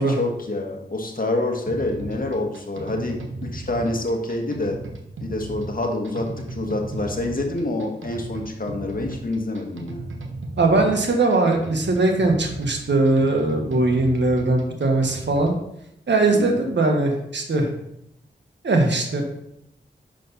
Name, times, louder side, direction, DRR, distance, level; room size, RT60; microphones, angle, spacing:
voice 1, 0.1-4.8 5.2-10.1 16.3-16.6, left 2 dB, 45° left, 2 dB, 1.5 m, -27 dB
sound 1, 1.7-15.6, right 2 dB, 85° right, 0.9 m, -36 dB
voice 2, 10.6-15.5 16.1-17.7 18.6-19.2, right 2 dB, 65° right, 2 dB, 1.5 m, -20 dB
6.2 x 5.8 x 4.2 m, 0.79 s
cardioid pair, 40°, 19 cm